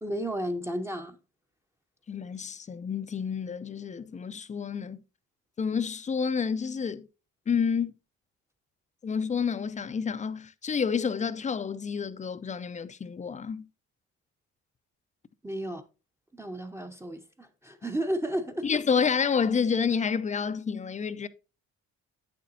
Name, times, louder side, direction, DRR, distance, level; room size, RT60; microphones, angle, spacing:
voice 1, 0.0-1.2 15.4-15.8 16.3-18.7, right 1 dB, 10° right, 0.7 m, -33 dB
voice 2, 2.1-5.0 5.6-7.1 7.5-7.9 9.0-13.7 18.6-21.3, left 6 dB, 25° left, 0.5 m, -29 dB
8.4 x 6.8 x 2.6 m
cardioid pair, 90°, 30 cm